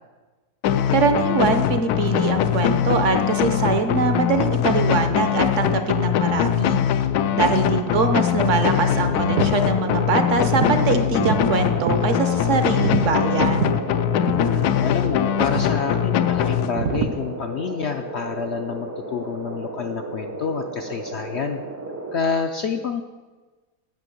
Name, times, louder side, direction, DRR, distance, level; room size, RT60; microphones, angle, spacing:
sound 1, 0.6-17.2, left 9 dB, 80° left, 1.1 m, -22 dB
voice 1, 0.9-6.8 7.4-13.8, right 4 dB, 60° right, 8 dB, 1.0 m, -23 dB
sound 2, 6.2-6.6 7.0-8.3 8.8-9.5 9.9-10.8 11.1-12.1 12.7-13.8 14.3-14.5 14.8-14.9 15.4-15.7 16.7-17.1, right 7 dB, 90° right, 1.2 m, -28 dB
voice 2, 7.1-7.5 14.2-21.6 22.1-23.0, left 6 dB, 65° left, 5 dB, 0.6 m, -28 dB
sound 3, 8.5-22.2, right 2 dB, 15° right, 0.6 m, -34 dB
9.1 x 5.9 x 7.7 m, 1.3 s
omnidirectional pair, 1.6 m